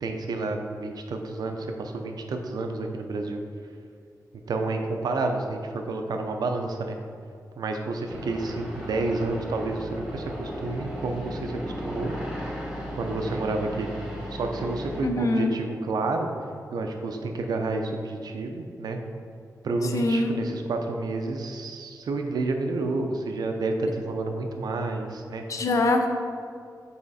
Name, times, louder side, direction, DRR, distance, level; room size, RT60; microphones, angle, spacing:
voice 1, 0.0-3.4 4.5-7.0 7.6-12.2 13.0-13.9 14.3-16.3 16.7-19.0 19.6-25.4, right 3 dB, 85° right, 4 dB, 0.5 m, -30 dB
sound 1, 8.1-15.0, equal, 5° right, 1.0 m, -35 dB
voice 2, 15.0-15.5 19.9-20.3 25.5-26.1, left 2 dB, 55° left, 4 dB, 0.5 m, -23 dB
5.6 x 4.2 x 4.1 m, 2.3 s
wide cardioid pair, 175°, 7 cm